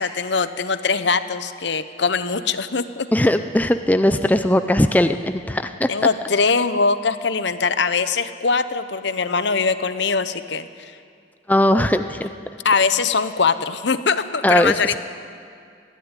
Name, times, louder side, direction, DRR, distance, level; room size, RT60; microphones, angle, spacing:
voice 1, 0.0-3.1 5.9-10.9 12.6-15.0, left 5 dB, 65° left, 12 dB, 0.9 m, -22 dB
voice 2, 3.1-5.9 11.5-12.3 14.4-14.7, left 1 dB, 10° left, 9 dB, 0.5 m, -18 dB
20.5 x 14.5 x 9.8 m, 2.3 s
head